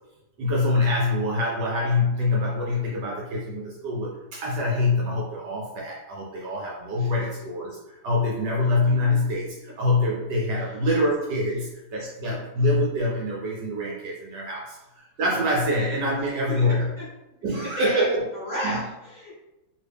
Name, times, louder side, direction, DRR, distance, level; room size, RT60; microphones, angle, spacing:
voice 1, 0.4-16.9 17.4-18.3 18.6-18.8, left 2 dB, 65° right, -3 dB, 1.2 m, -25 dB
voice 2, 17.8-18.1 18.3-19.3, equal, 35° left, -10 dB, 0.9 m, -32 dB
3.0 x 2.7 x 3.3 m, 0.95 s
omnidirectional pair, 2.2 m